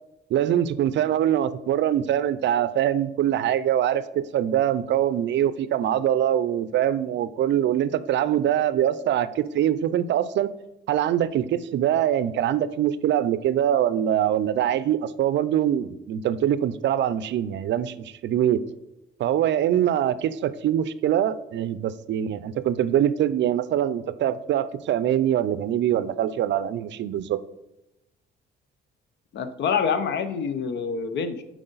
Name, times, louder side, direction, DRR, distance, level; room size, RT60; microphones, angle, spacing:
voice 1, 0.3-10.5 10.9-18.6 19.2-27.4, right 11 dB, 65° right, 16 dB, 0.4 m, -23 dB
voice 2, 29.3-31.4, left 6 dB, 65° left, 10 dB, 0.7 m, -26 dB
7.6 x 4.8 x 3.9 m, 0.90 s
cardioid pair, 90°, 20 cm